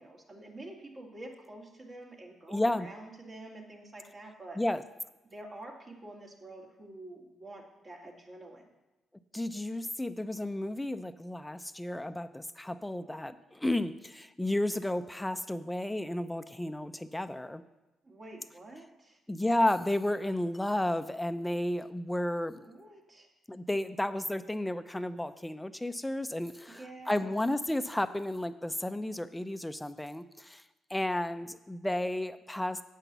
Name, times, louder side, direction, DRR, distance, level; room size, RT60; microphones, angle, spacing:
voice 1, 0.0-4.6 5.2-8.6 18.0-19.2 22.6-23.3 26.7-27.4, right 1 dB, 45° right, -1 dB, 2.2 m, -48 dB
voice 2, 2.5-2.9 4.6-4.8 9.3-17.6 19.3-22.7 23.5-30.6 30.9-32.8, left 1 dB, 10° left, 11 dB, 0.6 m, -32 dB
8.2 x 5.9 x 6.8 m, 1.1 s
supercardioid pair, 55°, 0 cm